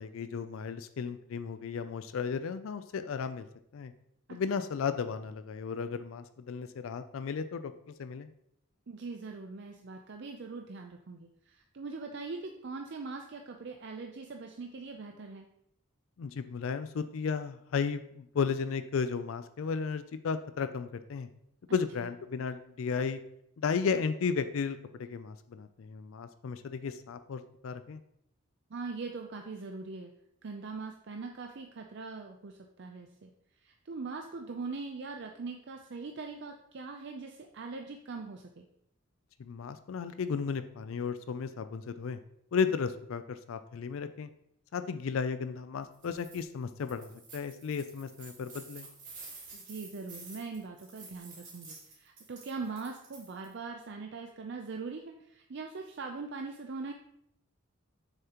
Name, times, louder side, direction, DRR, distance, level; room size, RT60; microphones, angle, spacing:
voice 1, 0.0-3.5 3.7-3.9 4.3-8.3 16.2-21.3 21.7-23.2 23.6-28.0 39.4-42.2 42.5-44.3 44.7-48.9, left 5 dB, 70° left, 11 dB, 0.4 m, -34 dB
voice 2, 8.9-15.5 21.7-21.8 28.7-30.1 30.4-33.3 33.6-38.7 49.5-56.9, right 4 dB, 55° right, 3 dB, 0.5 m, -41 dB
sound 1, 45.9-46.4 46.8-53.5, right 4 dB, 35° right, 3.0 m, -50 dB
7.2 x 6.7 x 2.9 m, 0.76 s
head